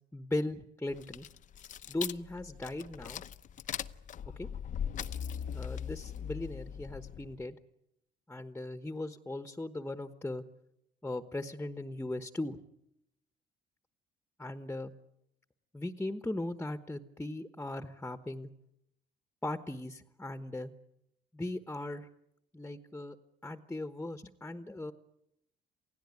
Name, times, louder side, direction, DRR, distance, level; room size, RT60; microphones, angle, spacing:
voice 1, 0.1-1.3 1.9-3.2 4.4-4.5 5.5-7.6 8.3-10.4 11.0-12.6 14.4-14.9 15.7-18.5 19.4-20.7 21.3-22.1 22.5-23.2 23.4-24.9, left 2 dB, 10° left, 9 dB, 1.2 m, -38 dB
sound 1, 0.9-7.4, left 8 dB, 50° left, 0.8 m, -40 dB
28.5 x 16.5 x 9.7 m, 0.85 s
cardioid pair, 110°, 17 cm